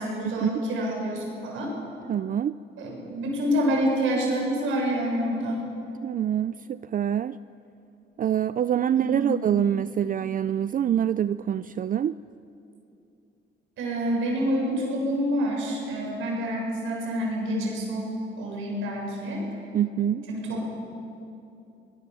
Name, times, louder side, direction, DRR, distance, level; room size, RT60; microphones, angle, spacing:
voice 1, 0.0-1.7 2.8-5.7 9.0-9.4 13.8-18.1 18.4-19.4 20.3-20.7, equal, 80° right, -1 dB, 6.9 m, -27 dB
voice 2, 2.1-2.6 6.0-7.4 8.2-12.2 19.7-20.3, right 9 dB, 45° right, 15 dB, 0.5 m, -25 dB
24.5 x 20.0 x 7.0 m, 2.7 s
cardioid pair, 90°, 20 cm